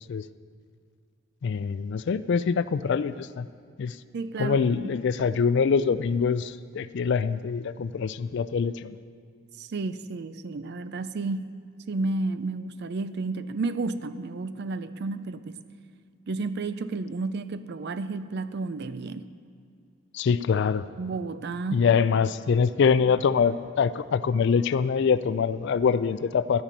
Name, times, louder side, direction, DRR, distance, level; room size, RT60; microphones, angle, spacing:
voice 1, 1.4-3.5 3.8-4.0 4.4-9.0 20.1-20.8 21.7-26.6, left 6 dB, 55° left, 15 dB, 0.3 m, -24 dB
voice 2, 4.1-4.9 9.6-11.5 11.9-15.6 16.3-19.3 21.0-21.9, right 3 dB, 55° right, 13 dB, 0.4 m, -32 dB
12.0 x 10.0 x 5.3 m, 2.3 s
head